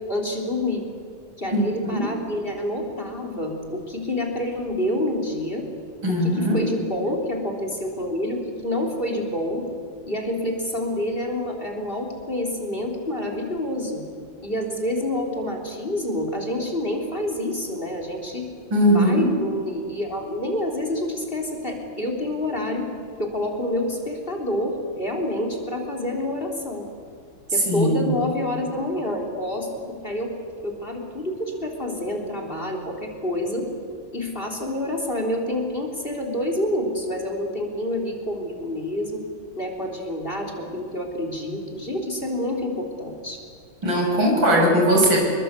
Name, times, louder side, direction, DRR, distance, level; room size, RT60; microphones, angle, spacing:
voice 1, 0.1-0.8 1.4-5.7 6.1-9.6 10.1-14.0 14.4-18.5 18.9-22.9 23.2-26.9 27.5-33.7 34.1-39.2 39.6-43.4, left 1 dB, 25° left, 2 dB, 3.8 m, -28 dB
voice 2, 1.5-2.1 6.0-6.6 18.7-19.3 27.5-28.1 43.8-45.2, equal, 80° right, 0 dB, 7.7 m, -19 dB
27.5 x 22.5 x 8.3 m, 2.1 s
omnidirectional pair, 2.1 m